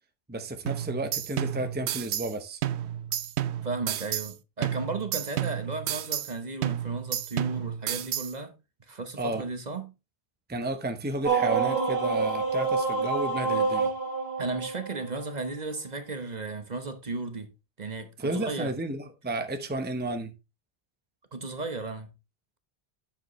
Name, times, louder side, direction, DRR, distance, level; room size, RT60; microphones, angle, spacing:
voice 1, 0.3-2.6 9.2-9.4 10.5-13.9 18.2-20.3, right 2 dB, 10° right, 0.8 m, -32 dB
sound 1, 0.7-2.3 2.6-4.3 4.6-6.3 6.6-8.3, right 11 dB, 90° right, 0.9 m, -31 dB
voice 2, 3.6-8.5 8.9-9.9 14.4-17.5 17.8-18.7 21.3-22.1, right 3 dB, 40° right, 1.1 m, -35 dB
sound 2, 11.2-15.5, right 4 dB, 65° right, 2.4 m, -27 dB
9.3 x 7.3 x 3.1 m
omnidirectional pair, 1.1 m